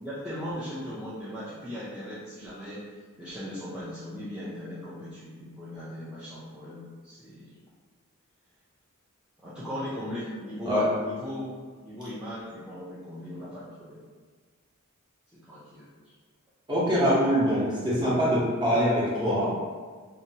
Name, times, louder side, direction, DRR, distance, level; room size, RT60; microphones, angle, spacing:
voice 1, 0.0-2.9 3.2-7.5 9.4-11.5 11.8-14.0 15.3-16.1, equal, 5° right, -12 dB, 0.4 m, -38 dB
voice 2, 16.7-19.5, equal, 20° right, -8 dB, 0.8 m, -24 dB
2.8 x 2.2 x 2.7 m, 1.5 s
head